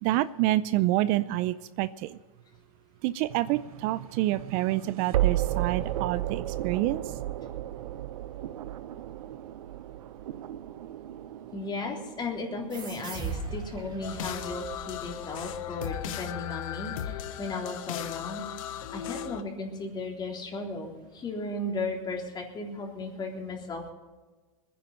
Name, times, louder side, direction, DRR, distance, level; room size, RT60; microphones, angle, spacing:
voice 1, 0.0-2.2 3.0-7.0, right 16 dB, 50° right, 16 dB, 0.5 m, -27 dB
sound 1, 3.3-14.3, right 13 dB, 80° right, 0.8 m, -34 dB
voice 2, 11.5-18.4 18.9-23.9, left 2 dB, 25° left, 1 dB, 3.6 m, -35 dB
sound 2, 12.7-15.9, right 4 dB, 25° right, 4.2 m, -39 dB
sound 3, 14.0-19.4, left 11 dB, 70° left, 1.1 m, -37 dB
21.0 x 10.0 x 5.3 m, 1.3 s
supercardioid pair, 125°, 18 cm